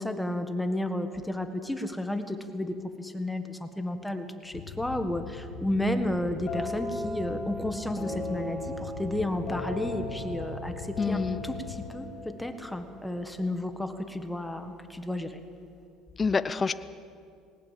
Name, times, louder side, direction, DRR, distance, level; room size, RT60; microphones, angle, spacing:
voice 1, 0.0-11.2 11.4-15.4, left 1 dB, 5° left, 7 dB, 1.6 m, -32 dB
sound 1, 4.5-11.9, left 7 dB, 65° left, 1.7 m, -42 dB
sound 2, 6.5-14.2, left 1 dB, 40° left, 7.2 m, -38 dB
voice 2, 11.0-11.4 16.2-16.7, left 5 dB, 25° left, 13 dB, 0.7 m, -26 dB
20.0 x 19.0 x 7.5 m, 2.3 s
cardioid pair, 120°, 0 cm